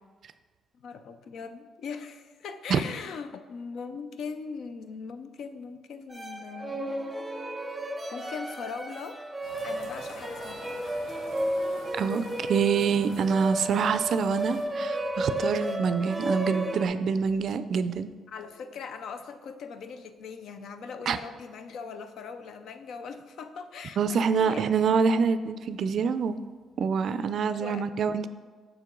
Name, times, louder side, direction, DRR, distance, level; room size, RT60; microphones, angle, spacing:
voice 1, 0.7-6.9 8.1-9.2 9.6-10.8 18.3-24.6 27.6-27.9, left 5 dB, 70° left, 10 dB, 0.4 m, -40 dB
sound 1, 6.1-16.9, right 1 dB, 10° right, 0.7 m, -33 dB
sound 2, 9.4-14.6, left 1 dB, 85° left, 1.3 m, -47 dB
voice 2, 11.9-18.1 21.1-21.2 24.0-26.4 26.8-28.3, right 6 dB, 60° right, 12 dB, 0.3 m, -26 dB
6.4 x 4.5 x 3.8 m, 1.5 s
cardioid pair, 90°, 0 cm